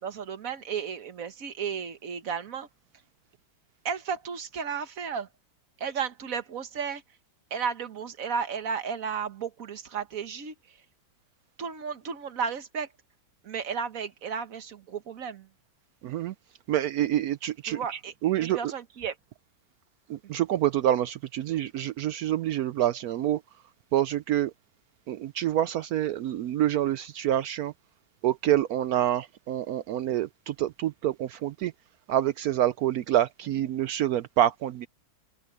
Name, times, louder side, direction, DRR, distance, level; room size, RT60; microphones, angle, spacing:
voice 1, 0.0-2.7 3.8-5.3 5.8-7.0 7.5-10.8 11.6-12.9 13.4-15.5 17.6-19.1 20.2-20.4, right 6 dB, 50° right, 1.5 m, -34 dB
voice 2, 16.0-16.3 16.7-18.6 20.1-23.4 23.9-24.5 25.1-27.7 28.2-31.7 32.1-34.9, right 12 dB, 80° right, 0.8 m, -27 dB
open air
omnidirectional pair, 2.1 m